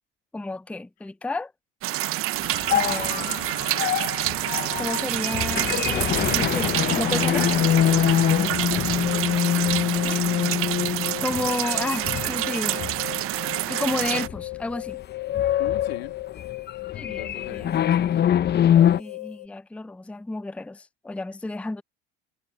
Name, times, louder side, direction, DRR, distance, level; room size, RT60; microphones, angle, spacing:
voice 1, 0.3-1.5 2.7-3.4 4.8-7.5 10.0-10.2 11.2-12.8 13.7-15.0 16.9-17.8 19.0-21.8, left 2 dB, 5° left, 0.6 m, -32 dB
sound 1, 1.8-14.3, right 16 dB, 50° right, 0.7 m, -27 dB
sound 2, 2.4-13.1 13.5-13.7 14.2-14.6 14.9-19.0, left 10 dB, 35° left, 1.0 m, -24 dB
voice 2, 8.5-9.3 9.8-10.3 15.6-16.2 17.0-18.3, left 13 dB, 90° left, 2.8 m, -40 dB
sound 3, 9.0-19.5, left 22 dB, 65° left, 5.7 m, -37 dB
hypercardioid pair, 85°, 29 cm